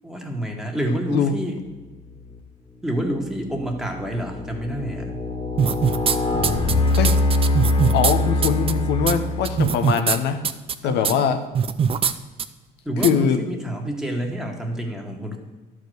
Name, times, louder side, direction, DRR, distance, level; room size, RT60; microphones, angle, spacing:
voice 1, 0.0-1.6 2.8-5.2 10.8-11.2 12.8-15.4, right 1 dB, 5° right, 2 dB, 1.8 m, -28 dB
sound 1, 2.0-2.4 3.0-9.8, left 2 dB, 30° left, 1.7 m, -24 dB
sound 2, 5.6-6.2 6.4-8.1 8.4-8.7 9.1-9.2 9.4-10.2 10.4-10.7 11.0-11.1 11.5-12.1 12.4-12.5 13.0-13.1, right 7 dB, 35° right, 0.6 m, -21 dB
voice 2, 7.9-10.4 10.8-11.4 13.0-13.4, left 7 dB, 85° left, 8 dB, 0.9 m, -22 dB
11.5 x 4.9 x 7.8 m, 1.2 s
cardioid pair, 110°, 17 cm